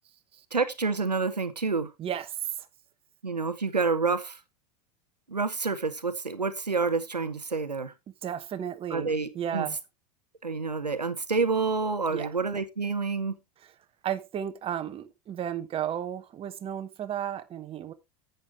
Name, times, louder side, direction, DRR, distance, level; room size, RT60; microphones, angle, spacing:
voice 1, 0.5-1.9 3.2-4.4 5.3-7.9 8.9-9.7 10.4-13.3, right 4 dB, 85° right, 0.9 m, -28 dB
voice 2, 2.0-2.7 8.2-9.1 9.3-9.8 12.1-12.3 14.0-17.9, right 9 dB, 30° right, 1.1 m, -33 dB
10.5 x 7.9 x 3.2 m
figure-of-eight pair, 80°, 20 cm